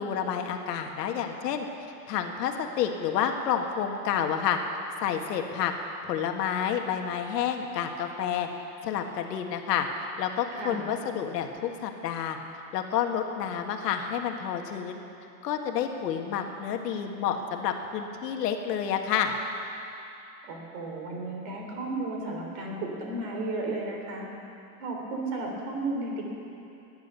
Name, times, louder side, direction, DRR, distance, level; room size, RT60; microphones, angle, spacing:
voice 1, 0.0-1.7 2.1-4.6 5.0-5.7 6.0-8.5 8.8-9.9 10.2-12.4 12.7-15.0 15.4-19.3, left 8 dB, 75° left, 4 dB, 1.8 m, -29 dB
voice 2, 10.5-10.9 20.5-24.3 24.8-26.2, right 2 dB, 45° right, 1 dB, 3.8 m, -33 dB
19.0 x 10.5 x 6.9 m, 2.8 s
supercardioid pair, 145°, 49 cm